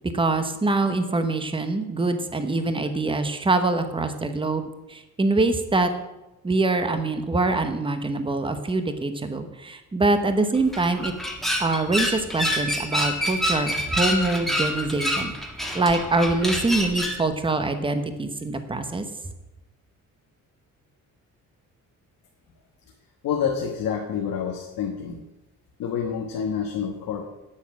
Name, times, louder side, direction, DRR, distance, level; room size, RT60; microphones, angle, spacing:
voice 1, 0.1-5.9 6.4-11.1 11.6-15.3 15.7-19.0, right 2 dB, 15° right, 8 dB, 1.0 m, -24 dB
sound 1, 10.6-17.2, equal, ahead, 1.6 m, -27 dB
voice 2, 23.2-25.2 25.8-27.2, left 7 dB, 90° left, 1 dB, 1.3 m, -28 dB
8.7 x 8.5 x 6.1 m, 0.97 s
cardioid pair, 125°, 33 cm